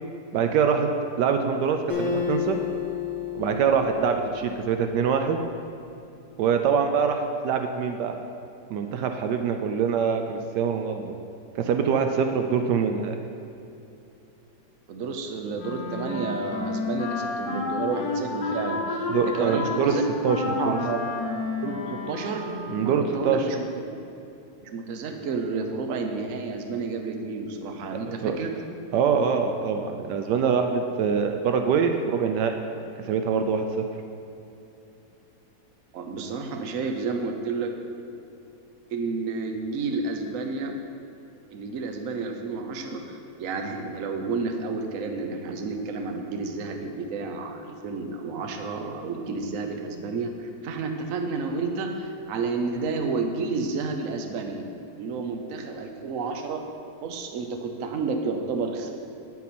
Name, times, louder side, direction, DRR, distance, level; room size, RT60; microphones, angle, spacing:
voice 1, 0.3-0.9 1.2-2.6 3.3-5.4 6.4-8.1 8.7-11.1 11.6-13.2 19.1-20.0 20.2-20.8 22.7-23.4 28.2-28.4 28.9-32.5 33.0-33.8, right 6 dB, 80° right, 5 dB, 1.2 m, -24 dB
Acoustic guitar, 1.9-5.4, left 7 dB, 10° left, 1.7 m, -32 dB
voice 2, 14.9-20.0 20.4-21.0 21.6-22.4 22.8-23.6 24.6-28.5 35.9-37.7 38.9-40.7 41.5-54.7 54.9-56.6 57.0-58.9, right 4 dB, 60° right, 4 dB, 1.0 m, -31 dB
Wind instrument woodwind instrument, 15.6-23.1, left 3 dB, 65° left, 1.5 m, -30 dB
8.7 x 8.2 x 4.3 m, 2.8 s
omnidirectional pair, 1.9 m